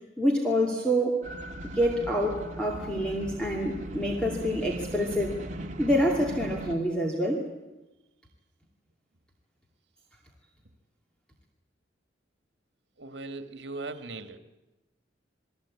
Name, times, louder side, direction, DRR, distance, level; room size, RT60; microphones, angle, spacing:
voice 1, 0.2-1.2 1.6-5.4 5.8-7.5, equal, 5° left, -1 dB, 2.5 m, -27 dB
sound 1, 1.2-6.7, right 1 dB, 40° right, 2.1 m, -38 dB
voice 2, 13.0-14.4, right 3 dB, 70° right, 8 dB, 2.0 m, -38 dB
28.5 x 20.5 x 8.5 m, 1.1 s
head